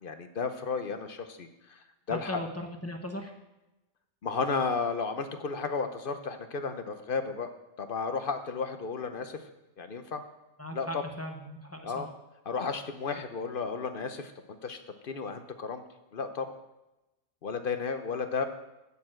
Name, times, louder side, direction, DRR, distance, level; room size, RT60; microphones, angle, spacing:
voice 1, 0.0-2.4 4.2-7.5 7.8-9.4 9.8-10.2 10.7-11.0 11.8-12.1 12.5-14.3 14.6-15.8 16.1-16.5 17.4-18.4, left 5 dB, 50° left, 8 dB, 0.8 m, -33 dB
voice 2, 2.1-3.3 10.6-12.1, equal, 15° left, 3 dB, 0.8 m, -38 dB
8.4 x 6.9 x 7.6 m, 0.99 s
omnidirectional pair, 1.4 m